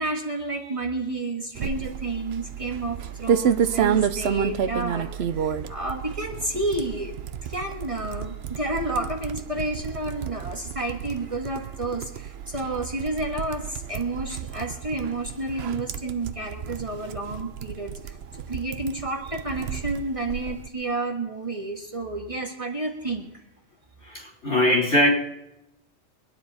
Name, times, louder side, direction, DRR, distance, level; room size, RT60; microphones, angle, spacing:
voice 1, 0.0-7.1 7.4-23.4, right 2 dB, 30° right, 1 dB, 1.6 m, -30 dB
sound 1, 1.6-20.7, right 8 dB, 65° right, 0.9 m, -30 dB
voice 2, 24.0-25.1, left 1 dB, 70° left, -2 dB, 4.4 m, -21 dB
23.5 x 9.9 x 4.2 m, 0.86 s
omnidirectional pair, 1.2 m